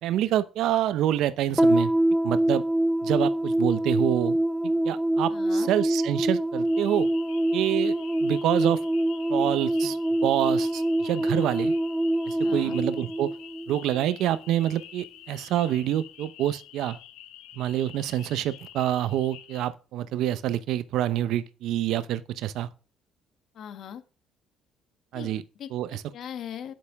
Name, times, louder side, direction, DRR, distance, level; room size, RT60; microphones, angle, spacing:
voice 1, 0.0-1.9 2.2-2.6 3.0-4.4 4.8-7.1 7.5-8.0 8.2-8.8 9.3-10.0 10.2-11.7 12.3-13.3 13.7-17.0 17.6-22.7 25.1-25.4 25.7-26.0, right 12 dB, 75° right, 0.7 m, -27 dB
sound 1, 1.6-14.1, right 1 dB, 5° right, 1.0 m, -25 dB
voice 2, 5.3-5.7 12.4-12.8 23.5-24.0 25.1-25.3 25.6-26.7, left 9 dB, 65° left, 1.3 m, -40 dB
sound 2, 6.6-19.7, left 11 dB, 90° left, 1.3 m, -48 dB
9.2 x 6.9 x 3.6 m
supercardioid pair, 80°, 0 cm